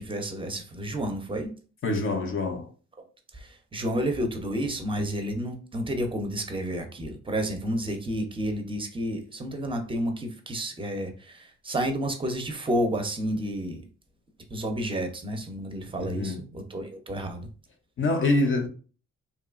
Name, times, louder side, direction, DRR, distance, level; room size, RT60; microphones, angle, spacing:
voice 1, 0.0-1.5 3.3-13.8 14.5-17.5, equal, 15° right, 0.6 m, -30 dB
voice 2, 1.8-2.7 16.0-16.4 18.0-18.7, left 2 dB, 40° left, 0.6 m, -25 dB
2.8 x 2.3 x 2.4 m
cardioid pair, 90°, 30 cm